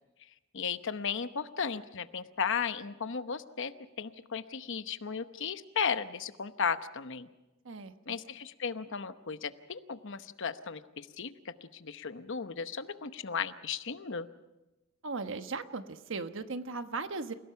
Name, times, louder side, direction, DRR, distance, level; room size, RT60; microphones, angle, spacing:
voice 1, 0.5-3.7 4.0-7.3 8.1-14.3, left 6 dB, 60° left, 11 dB, 0.9 m, -35 dB
voice 2, 15.0-17.3, right 3 dB, 65° right, 9 dB, 1.2 m, -37 dB
28.5 x 17.0 x 5.8 m, 1.0 s
head